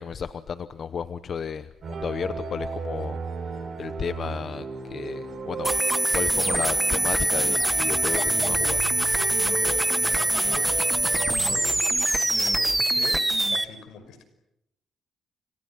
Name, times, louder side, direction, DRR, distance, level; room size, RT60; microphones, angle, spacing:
voice 1, 0.0-3.2 3.8-5.8 6.1-8.9, left 6 dB, 50° left, 12 dB, 0.9 m, -33 dB
sound 1, 1.8-11.6, right 4 dB, 50° right, 5.8 m, -35 dB
sound 2, 5.6-13.6, right 1 dB, 10° right, 1.4 m, -23 dB
voice 2, 9.5-10.8 11.5-13.2 13.5-14.2, left 6 dB, 85° left, 10 dB, 5.5 m, -41 dB
30.0 x 26.0 x 6.0 m, 0.84 s
cardioid pair, 90°, 0 cm